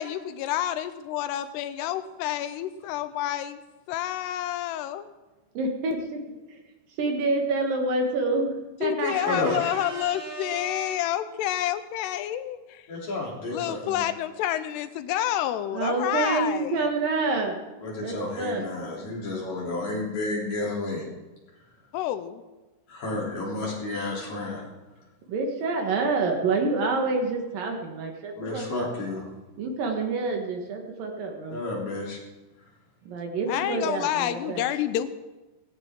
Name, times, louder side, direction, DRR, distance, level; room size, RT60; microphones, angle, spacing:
voice 1, 0.0-3.6 3.9-5.1 8.8-12.9 13.5-16.9 21.9-22.4 33.5-35.1, left 12 dB, 85° left, 12 dB, 2.8 m, -29 dB
voice 2, 5.5-6.2 7.0-8.5 8.8-11.0 15.7-18.6 25.3-28.9 29.6-31.6 33.1-34.7, right 3 dB, 65° right, 2 dB, 2.9 m, -28 dB
voice 3, 12.9-14.0 17.8-21.0 22.9-24.6 28.4-29.3 31.5-32.2, left 2 dB, 45° left, -4 dB, 4.6 m, -31 dB
17.0 x 16.5 x 3.8 m, 1.1 s
omnidirectional pair, 4.7 m